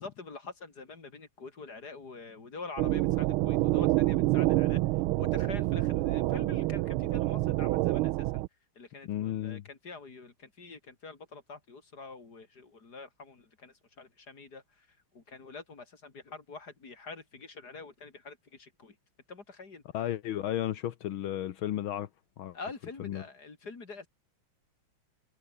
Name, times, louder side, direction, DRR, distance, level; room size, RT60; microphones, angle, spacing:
voice 1, 0.0-8.4 8.8-19.0 19.3-19.8 22.5-24.1, left 4 dB, 50° left, 3.5 m, -46 dB
sound 1, 2.8-8.5, right 18 dB, 85° right, 1.4 m, -27 dB
voice 2, 9.0-9.6 19.9-22.1 22.4-22.6 23.0-23.2, left 12 dB, 75° left, 1.8 m, -33 dB
omnidirectional pair, 2.3 m